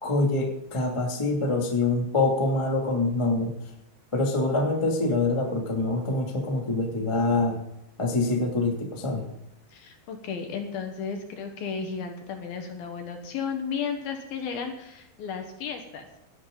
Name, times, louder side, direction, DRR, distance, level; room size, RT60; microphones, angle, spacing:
voice 1, 0.0-3.5 4.1-7.6 8.0-9.2, left 2 dB, 20° left, 0 dB, 0.8 m, -25 dB
voice 2, 9.7-16.1, left 6 dB, 65° left, 5 dB, 2.7 m, -34 dB
18.0 x 11.5 x 3.9 m, 0.85 s
omnidirectional pair, 5.5 m